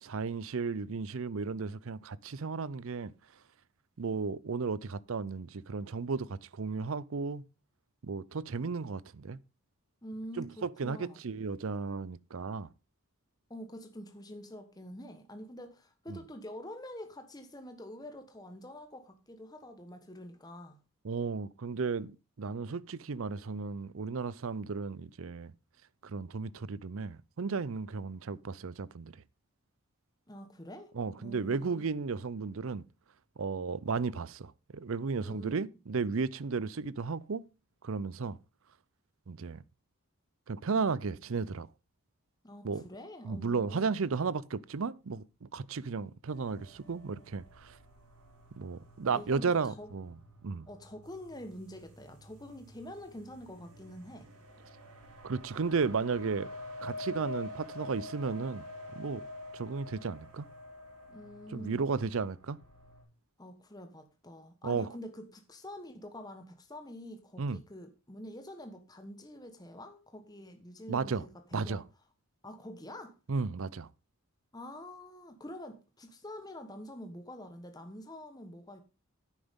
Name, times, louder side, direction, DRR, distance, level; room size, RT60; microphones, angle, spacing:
voice 1, 0.0-3.1 4.0-7.4 8.0-9.4 10.4-12.7 16.1-16.2 21.0-25.5 26.0-29.2 30.9-32.8 33.4-37.5 37.8-38.4 39.3-39.6 40.5-41.7 42.6-42.8 43.2-47.8 48.6-50.1 50.4-50.7 55.2-56.5 56.8-58.7 58.9-59.2 59.5-60.5 61.5-62.6 64.6-64.9 67.4-67.6 70.9-71.2 71.5-71.8 73.3-73.9, right 4 dB, 65° right, 0.5 m, -34 dB
voice 2, 10.0-11.2 13.5-20.8 30.3-31.8 35.2-35.6 42.4-43.9 49.1-49.9 50.7-54.3 61.1-61.8 63.4-71.8 72.4-73.2 74.5-78.8, left 1 dB, 15° left, 1.2 m, -46 dB
sound 1, 46.2-63.0, left 1 dB, 90° right, 5.3 m, -48 dB
10.5 x 9.1 x 3.6 m
head